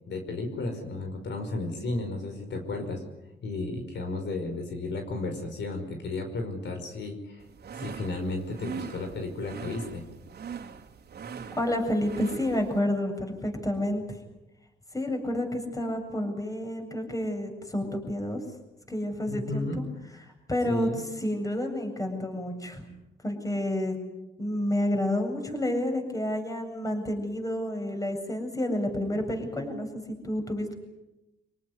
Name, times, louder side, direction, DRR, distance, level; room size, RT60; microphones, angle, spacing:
voice 1, 0.1-3.0 3.4-7.5 7.8-10.0 19.3-19.8 20.7-21.0, left 2 dB, 65° left, 5 dB, 5.4 m, -33 dB
sound 1, 7.4-12.8, right 6 dB, 55° right, 2.9 m, -41 dB
voice 2, 11.5-14.0 14.9-18.4 18.9-19.8 20.5-20.9 21.2-22.8 23.2-24.0 24.4-30.8, left 1 dB, 15° left, 4 dB, 7.7 m, -29 dB
26.0 x 18.5 x 9.7 m, 0.96 s
cardioid pair, 90°, 20 cm